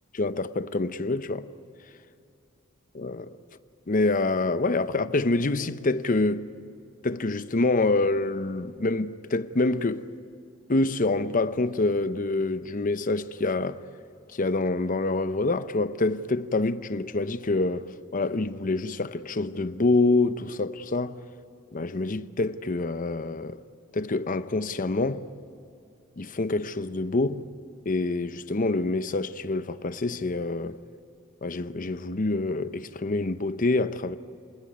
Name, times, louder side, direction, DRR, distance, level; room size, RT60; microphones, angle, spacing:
voice 1, 0.1-1.5 2.9-3.4 3.9-6.5 7.0-10.1 10.7-13.8 14.3-21.2 21.7-23.6 23.9-25.3 26.2-27.5 27.8-30.8 31.4-34.2, left 2 dB, 40° left, 0.7 m, -26 dB
28.0 x 19.0 x 9.4 m
head